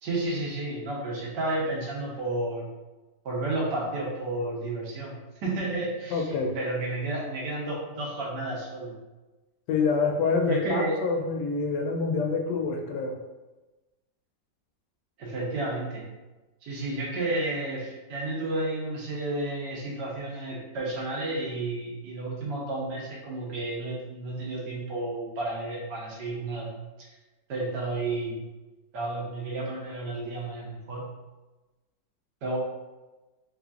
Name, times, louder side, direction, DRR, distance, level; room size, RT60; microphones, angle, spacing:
voice 1, 0.0-2.7 3.2-8.9 10.5-11.0 15.2-16.1 16.6-26.7 27.0-27.1 27.5-28.4 28.9-31.1 32.4-32.6, right 2 dB, 75° right, -4 dB, 1.5 m, -31 dB
voice 2, 6.1-6.5 9.7-13.2, left 4 dB, 80° left, 2 dB, 1.2 m, -26 dB
3.5 x 3.2 x 2.4 m, 1.1 s
omnidirectional pair, 1.9 m